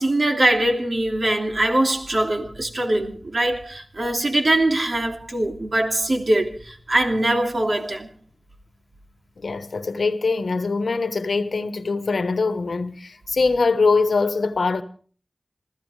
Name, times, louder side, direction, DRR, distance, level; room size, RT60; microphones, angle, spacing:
voice 1, 0.0-8.1, right 1 dB, 60° right, 2.8 m, -22 dB
voice 2, 9.4-14.8, left 4 dB, 90° left, 1.1 m, -22 dB
27.0 x 15.0 x 3.3 m
wide cardioid pair, 55°, 0 cm